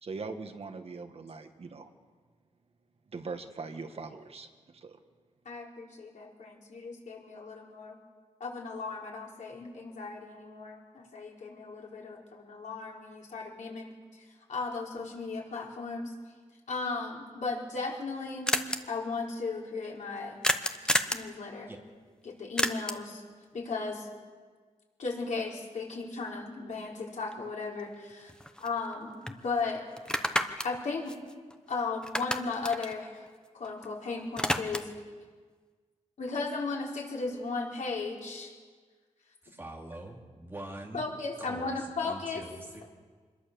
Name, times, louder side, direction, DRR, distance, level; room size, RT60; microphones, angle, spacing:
voice 1, 0.0-1.9 3.1-5.0, right 4 dB, 55° right, 6 dB, 1.6 m, -41 dB
voice 2, 5.4-8.0 8.4-16.1 16.7-18.5 18.9-20.4 21.1-21.7 22.2-23.2 23.5-24.1 25.0-28.3 28.6-29.9 30.6-31.1 31.7-33.2 33.5-34.9 36.2-38.5 40.9-42.4, left 4 dB, 85° left, -2 dB, 4.6 m, -36 dB
sound 1, 17.5-17.6 17.8-17.9 18.1-18.2 18.5-18.8 20.4-21.3 22.6-23.1 27.3-27.4 27.8-29.0 29.3-29.4 30.0-31.7 32.0-33.9 34.1-35.0, left 1 dB, 5° left, 1.0 m, -31 dB
voice 3, 39.4-41.1 41.4-42.9, right 1 dB, 20° right, 0 dB, 2.9 m, -44 dB
26.5 x 22.0 x 7.0 m, 1.5 s
wide cardioid pair, 165°, 12 cm